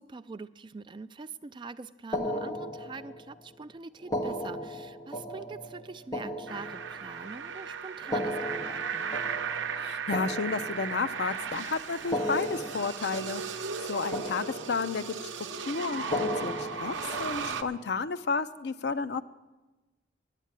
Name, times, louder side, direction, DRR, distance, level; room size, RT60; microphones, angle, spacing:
voice 1, 0.0-9.2, right 4 dB, 25° right, 12 dB, 0.3 m, -44 dB
sound 1, 2.1-3.4 4.0-7.3 8.0-11.3 12.0-13.9 14.1-15.2 16.0-17.8, equal, 20° left, 0.9 m, -36 dB
sound 2, 6.5-17.6, right 6 dB, 80° right, 0.7 m, -36 dB
voice 2, 9.8-15.3 15.7-19.2, left 4 dB, 60° left, 11 dB, 0.5 m, -32 dB
10.5 x 8.3 x 8.8 m, 1.1 s
head